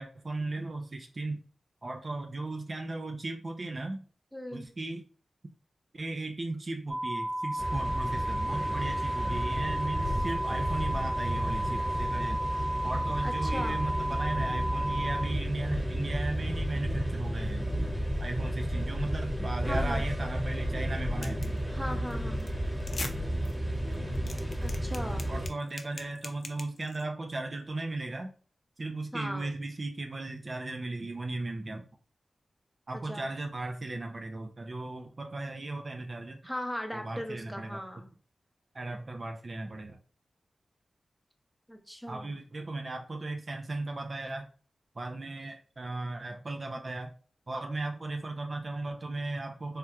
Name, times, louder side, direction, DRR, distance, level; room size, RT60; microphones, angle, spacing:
voice 1, 0.0-1.4 1.8-4.0 4.5-5.0 5.9-12.5 12.8-17.7 18.2-21.6 25.3-28.3 28.8-31.9 32.9-36.4 36.9-37.8 38.7-40.0 42.1-44.5 45.0-47.1 47.5-49.8, right 2 dB, 50° right, 4 dB, 0.4 m, -36 dB
voice 2, 4.3-4.7 13.2-13.8 19.7-20.0 21.7-22.5 24.6-25.3 29.1-29.6 33.1-33.3 36.4-38.1 41.7-42.3, equal, ahead, 3 dB, 0.8 m, -38 dB
sound 1, 6.9-15.3, right 1 dB, 65° right, 0.9 m, -33 dB
sound 2, 7.6-25.5, equal, 20° right, 1.1 m, -32 dB
sound 3, 21.2-21.6 21.9-22.1 22.4-22.5 22.8-23.1 23.4-23.5 23.9-27.0, left 3 dB, 60° left, 0.5 m, -41 dB
3.5 x 2.7 x 2.3 m, 0.42 s
cardioid pair, 50°, 0 cm